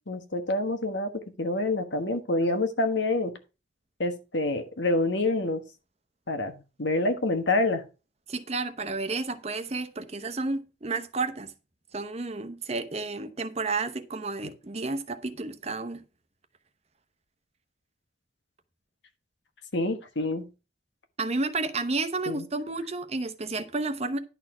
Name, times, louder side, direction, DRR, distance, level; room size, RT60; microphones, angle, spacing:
voice 1, 0.1-3.3 4.0-5.6 6.3-7.8 19.7-20.5 22.3-22.4, left 2 dB, 90° left, 1.4 m, -27 dB
voice 2, 8.3-11.5 11.9-16.0 21.2-24.2, right 3 dB, 35° right, 0.9 m, -31 dB
11.0 x 4.3 x 6.0 m
head